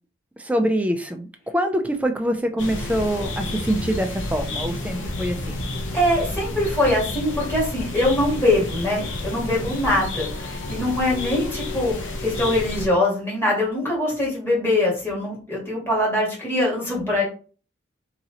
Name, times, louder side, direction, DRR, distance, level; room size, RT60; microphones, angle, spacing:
voice 1, 0.4-1.3 1.5-5.4, equal, 5° right, 5 dB, 0.5 m, -24 dB
sound 1, 2.6-12.9, left 2 dB, 75° left, 1.1 m, -30 dB
voice 2, 5.9-17.2, left 1 dB, 10° left, -5 dB, 2.0 m, -23 dB
3.8 x 3.0 x 4.1 m, 0.38 s
head